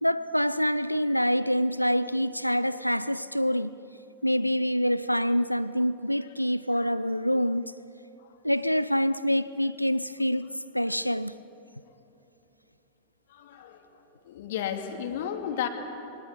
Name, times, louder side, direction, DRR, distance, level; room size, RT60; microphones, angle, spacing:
voice 1, 0.0-3.7 4.2-7.7 8.4-10.5 10.7-11.3, equal, 90° left, 0.5 m, -26 dB
voice 2, 13.3-13.8 14.3-15.7, left 9 dB, 55° left, 2.6 m, -33 dB
26.5 x 23.0 x 8.4 m
figure-of-eight pair, 90°, 0 cm